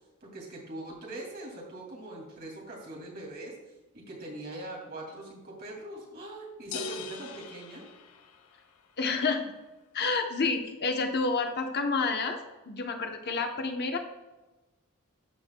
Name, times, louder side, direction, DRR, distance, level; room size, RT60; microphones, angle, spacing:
voice 1, 0.2-3.6 3.9-7.9, right 1 dB, 45° right, -2 dB, 2.3 m, -42 dB
sound 1, 6.7-8.8, left 4 dB, 85° left, 0.6 m, -40 dB
voice 2, 9.0-9.4 9.9-12.4 12.7-14.0, left 4 dB, 50° left, 4 dB, 0.8 m, -29 dB
13.0 x 6.3 x 2.2 m, 1.1 s
head